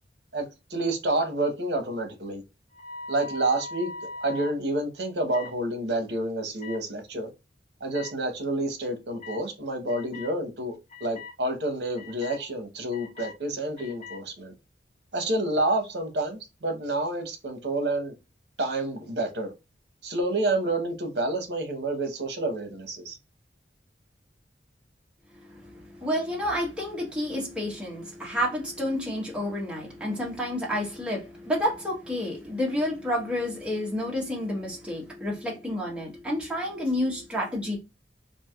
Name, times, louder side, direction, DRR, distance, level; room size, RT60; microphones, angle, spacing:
voice 1, 0.7-2.4 3.1-3.9 4.2-7.3 7.8-14.5 15.1-18.1 18.6-19.5 20.0-23.2, right 2 dB, 65° right, 0.8 m, -29 dB
sound 1, 2.7-4.5 5.3-5.5 6.6-6.8 7.9-8.1 9.2-9.4 9.9-10.3 10.9-11.3 12.0-12.4 12.9-13.3 13.8-14.2, left 3 dB, 40° left, 0.9 m, -40 dB
voice 2, 25.5-37.8, left 1 dB, 5° right, 1.0 m, -30 dB
3.2 x 2.6 x 2.2 m
head